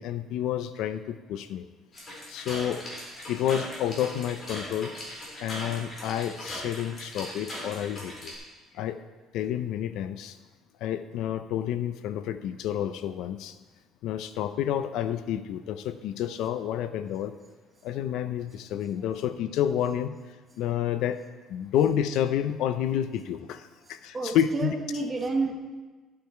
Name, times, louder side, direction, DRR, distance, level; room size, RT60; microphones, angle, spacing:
voice 1, 0.0-1.7 2.3-2.8 3.3-4.9 5.4-8.3 8.7-9.0 9.3-10.4 10.8-13.5 14.0-17.4 17.8-20.2 20.6-21.2 21.5-24.7, left 10 dB, 70° left, 11 dB, 0.5 m, -29 dB
sound 1, 1.9-8.3, left 1 dB, 30° left, 4.2 m, -39 dB
voice 2, 23.9-25.5, right 3 dB, 15° right, 2 dB, 1.4 m, -30 dB
14.0 x 8.7 x 4.5 m, 1.3 s
cardioid pair, 160°, 0 cm